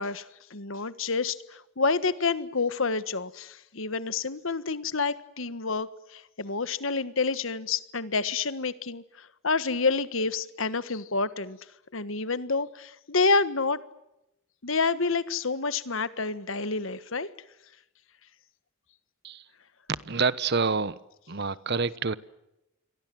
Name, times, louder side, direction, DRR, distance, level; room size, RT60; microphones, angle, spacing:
voice 1, 0.0-11.6 11.9-13.8 14.6-17.3, left 4 dB, 70° left, 14 dB, 1.5 m, -28 dB
voice 2, 19.9-21.0 21.3-22.2, right 4 dB, 50° right, 17 dB, 1.1 m, -27 dB
28.5 x 23.5 x 7.7 m, 0.90 s
head